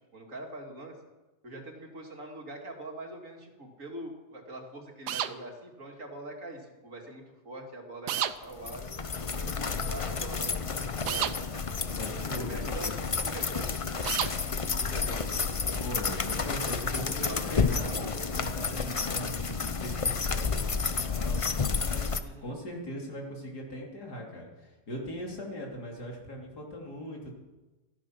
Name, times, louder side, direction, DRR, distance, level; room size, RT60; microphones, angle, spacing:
voice 1, 0.1-1.0 1.4-8.9 9.2-12.0 12.4-15.9 17.0-18.5 22.2-22.6, right 1 dB, 50° right, 1 dB, 2.9 m, -44 dB
sound 1, 5.1-5.3 8.1-8.4 11.1-11.3 14.1-14.3, right 11 dB, 85° right, 1.3 m, -29 dB
sound 2, 8.5-22.2, left 5 dB, 45° left, 0.4 m, -31 dB
voice 2, 12.0-13.0 15.8-27.3, equal, 80° left, -1 dB, 3.9 m, -40 dB
16.5 x 14.0 x 6.1 m, 1.1 s
omnidirectional pair, 1.7 m